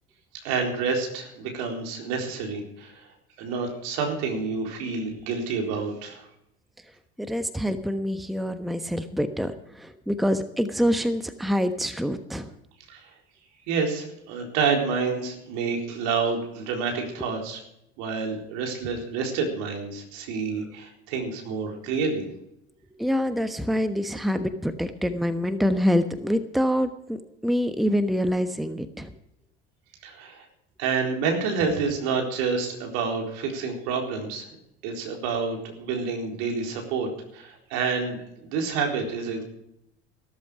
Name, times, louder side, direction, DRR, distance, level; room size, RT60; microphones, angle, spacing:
voice 1, 0.4-3.1 3.4-6.3 12.9-13.1 13.7-17.6 18.0-22.2 30.0-30.5 30.8-34.4 34.8-39.4, right 5 dB, 65° right, 1 dB, 4.2 m, -28 dB
voice 2, 7.2-12.5 23.0-29.1, equal, ahead, 9 dB, 1.2 m, -26 dB
15.0 x 13.5 x 5.0 m, 0.79 s
hypercardioid pair, 65°, 33 cm